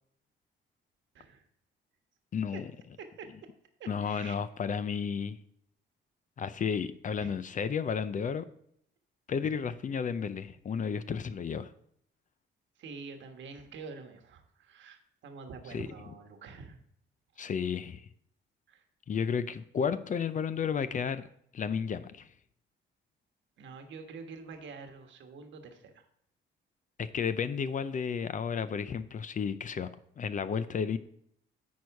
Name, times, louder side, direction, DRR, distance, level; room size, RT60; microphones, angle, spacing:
voice 1, 2.3-2.7 3.9-5.4 6.4-8.5 9.3-11.7 15.7-15.9 17.4-18.1 19.1-21.3 21.5-22.3 27.0-29.9 30.2-31.0, left 6 dB, 40° left, 13 dB, 0.5 m, -32 dB
voice 2, 3.0-3.3 3.8-4.3 7.2-7.3 12.8-16.8 18.7-18.8 23.6-26.0, right 5 dB, 70° right, 5 dB, 1.3 m, -46 dB
9.4 x 4.7 x 4.7 m, 0.70 s
cardioid pair, 90°, 20 cm